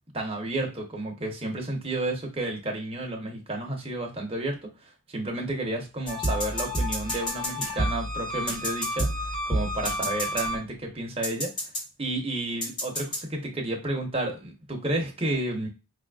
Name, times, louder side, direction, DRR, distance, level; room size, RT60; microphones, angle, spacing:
voice 1, 0.1-11.5 12.0-15.7, right 1 dB, 30° right, 0 dB, 0.9 m, -31 dB
sound 1, 6.1-10.9 11.2-11.8 12.6-13.2, equal, 25° left, 1.1 m, -29 dB
5.0 x 2.5 x 2.3 m, 0.28 s
head